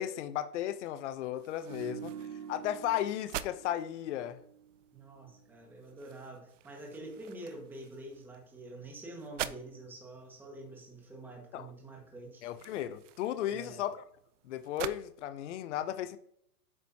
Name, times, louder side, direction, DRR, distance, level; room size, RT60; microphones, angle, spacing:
voice 1, 0.0-2.1 2.5-4.4 11.5-11.7 12.4-14.0 14.4-16.2, left 11 dB, 50° left, 0.7 m, -35 dB
sound 1, 1.4-15.0, right 11 dB, 50° right, 0.6 m, -47 dB
sound 2, 1.6-4.9 5.2-5.4, right 8 dB, 65° right, 1.1 m, -47 dB
voice 2, 1.7-2.2 4.9-12.5 13.5-13.8, right 2 dB, 5° right, 1.5 m, -47 dB
8.8 x 6.1 x 2.8 m
hypercardioid pair, 150°, 48 cm